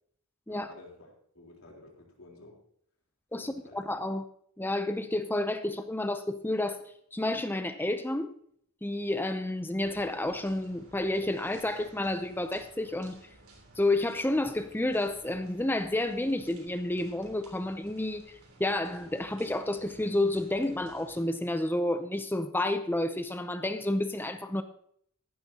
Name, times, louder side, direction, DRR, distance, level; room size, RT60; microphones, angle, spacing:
voice 1, 0.5-1.1 1.3-2.6 3.3-3.8, left 2 dB, 75° left, 3.8 m, -51 dB
voice 2, 3.3-4.2 4.6-6.8 7.1-8.3 8.8-13.2 13.8-24.6, left 1 dB, 10° left, 0.6 m, -30 dB
sound 1, 9.8-21.3, right 2 dB, 75° right, 3.5 m, -55 dB
15.0 x 12.5 x 2.9 m
head